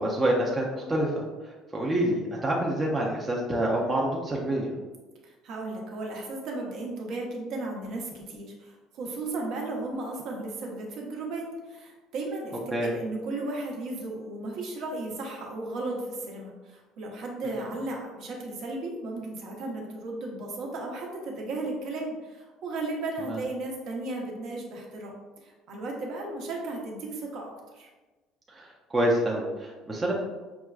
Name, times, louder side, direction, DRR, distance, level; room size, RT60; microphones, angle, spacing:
voice 1, 0.0-4.8 12.7-12.9 23.3-23.4 28.5-30.1, right 1 dB, 15° right, -3 dB, 0.5 m, -27 dB
voice 2, 5.2-25.2 25.4-27.9, right 2 dB, 55° right, -1 dB, 0.8 m, -35 dB
5.9 x 2.4 x 2.3 m, 1.2 s
cardioid pair, 155°, 0 cm